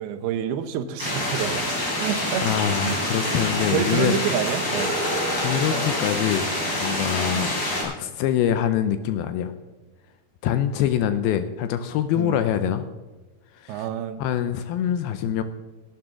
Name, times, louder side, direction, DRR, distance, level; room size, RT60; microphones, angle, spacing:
voice 1, 0.0-1.6 2.0-2.4 2.8-3.0 3.7-4.9 7.3-7.6 12.2-12.4 13.7-14.3, right 8 dB, 80° right, 9 dB, 2.7 m, -28 dB
sound 1, 1.0-7.8, left 1 dB, 25° left, 3.4 m, -26 dB
voice 2, 2.4-4.2 5.3-6.5 6.8-7.5 7.8-9.5 10.4-12.9 13.5-13.9 14.2-15.4, left 10 dB, 80° left, 10 dB, 2.3 m, -24 dB
18.0 x 8.9 x 3.7 m, 1.2 s
omnidirectional pair, 4.8 m